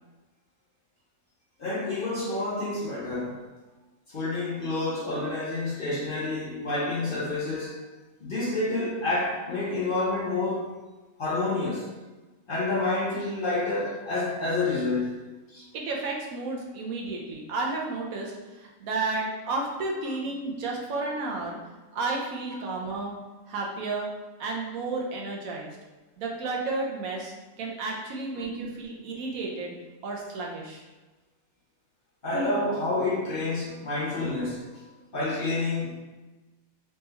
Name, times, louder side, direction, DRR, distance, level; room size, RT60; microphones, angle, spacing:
voice 1, 1.6-3.4 4.1-7.8 8.2-10.7 11.2-11.9 12.5-15.2 15.5-15.6 22.5-22.6 28.4-28.7 32.2-34.9 35.1-36.0, left 2 dB, 50° left, -5 dB, 0.7 m, -29 dB
voice 2, 15.7-21.6 21.9-23.1 23.5-24.1 24.4-25.7 26.2-29.7 30.0-30.8, right 3 dB, 75° right, -1 dB, 1.1 m, -32 dB
3.3 x 3.0 x 3.3 m, 1.2 s
omnidirectional pair, 1.5 m